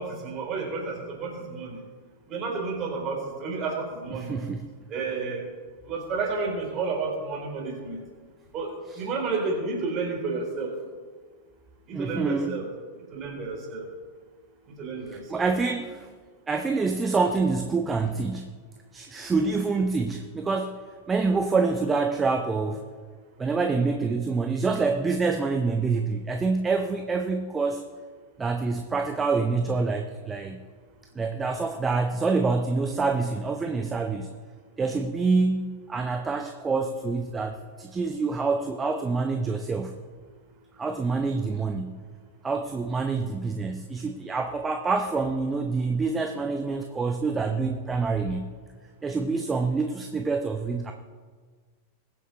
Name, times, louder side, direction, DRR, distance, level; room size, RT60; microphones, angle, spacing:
voice 1, 0.0-1.8 2.3-4.3 4.9-5.4 5.8-8.0 8.5-10.7 11.9-12.7 13.1-13.8 14.8-15.5 23.7-23.8, right 4 dB, 35° right, 0 dB, 3.6 m, -31 dB
voice 2, 4.1-4.7 8.9-9.0 11.9-12.6 15.1-16.1 16.5-18.6 18.9-22.8 23.4-27.8 28.4-30.6 31.2-34.3 34.8-40.0 40.8-42.0 42.4-48.6 49.0-50.9, right 4 dB, 15° right, 5 dB, 0.7 m, -26 dB
21.5 x 7.6 x 3.2 m, 1.5 s
figure-of-eight pair, 90°, 0 cm